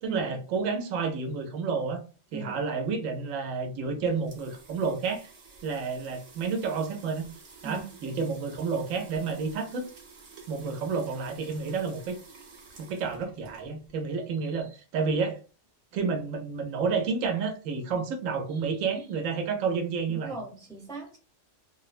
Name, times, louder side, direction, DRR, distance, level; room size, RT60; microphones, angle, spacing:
voice 1, 0.0-2.0 2.3-5.3 5.6-7.3 7.6-9.8 10.5-12.2 12.8-15.4 15.9-20.4, right 5 dB, 90° right, 6 dB, 1.0 m, -30 dB
sound 1, 3.8-14.1, right 4 dB, 60° right, 1.0 m, -51 dB
voice 2, 20.1-21.2, right 5 dB, 5° left, -2 dB, 0.6 m, -38 dB
2.9 x 2.0 x 2.4 m, 0.35 s
omnidirectional pair, 1.3 m